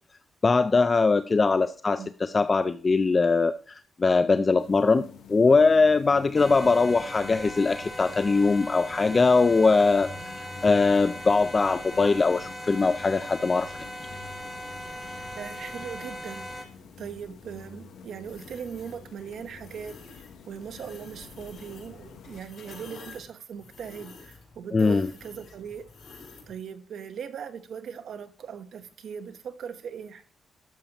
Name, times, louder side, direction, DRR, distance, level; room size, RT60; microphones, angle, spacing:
voice 1, 0.4-13.7 24.7-25.1, left 4 dB, 30° left, 12 dB, 0.4 m, -22 dB
sound 1, 4.6-22.4, left 5 dB, 80° left, 1.0 m, -47 dB
sound 2, 6.3-16.6, equal, ahead, 1.7 m, -39 dB
voice 2, 15.4-16.5 17.0-20.0 20.5-25.8 26.5-30.3, right 7 dB, 70° right, 9 dB, 0.9 m, -39 dB
sound 3, 18.3-19.0 19.6-20.3 20.6-26.5, left 4 dB, 65° left, 4.4 m, -49 dB
12.0 x 7.2 x 2.9 m, 0.43 s
cardioid pair, 95°, 0 cm